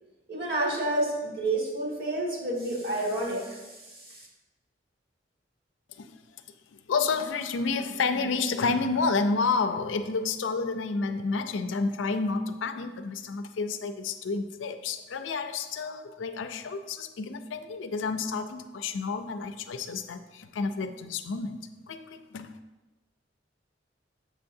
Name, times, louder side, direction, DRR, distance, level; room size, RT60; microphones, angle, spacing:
voice 1, 0.3-4.3, right 2 dB, 55° right, -4 dB, 2.0 m, -30 dB
voice 2, 6.9-21.6 21.9-22.5, left 4 dB, 85° left, 9 dB, 0.4 m, -30 dB
7.2 x 5.6 x 2.6 m, 1.1 s
head